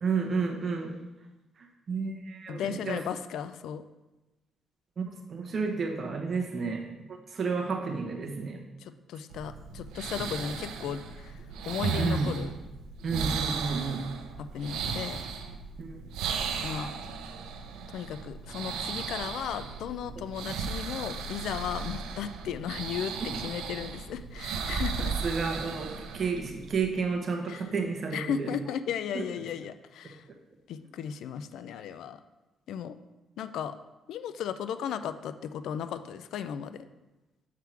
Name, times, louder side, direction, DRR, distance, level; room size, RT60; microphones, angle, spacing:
voice 1, 0.0-0.9 1.9-3.0 5.0-5.1 5.3-6.9 7.3-8.6 11.9-12.3 13.0-14.1 15.8-15.9 25.2-28.5 29.1-29.2, right 4 dB, 45° right, 2 dB, 1.1 m, -31 dB
voice 2, 2.5-3.8 8.8-12.5 14.4-15.2 16.6-16.9 17.9-25.1 27.5-27.7 28.1-30.2 30.7-32.2 32.7-32.9 33.4-33.8 34.1-36.8, left 8 dB, 80° left, 12 dB, 0.4 m, -35 dB
sound 1, 9.3-26.8, right 5 dB, 90° right, 0.5 m, -36 dB
7.4 x 3.6 x 4.6 m, 1.1 s
cardioid pair, 90°, 0 cm